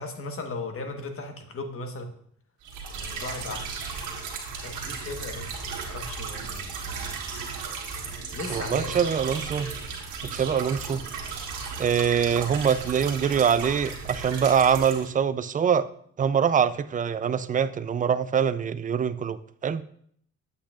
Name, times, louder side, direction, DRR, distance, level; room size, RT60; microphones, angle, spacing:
voice 1, 0.0-2.1 3.0-3.8 4.6-6.7 8.3-9.2 9.5-9.8, left 3 dB, 45° left, 5 dB, 1.3 m, -37 dB
sound 1, 2.6-15.1, right 5 dB, 85° right, 1.7 m, -35 dB
voice 2, 8.5-9.7 10.3-11.0 11.8-15.9 16.2-19.8, right 7 dB, 25° right, 14 dB, 0.4 m, -24 dB
8.3 x 8.2 x 2.4 m, 0.65 s
cardioid pair, 90°, 30 cm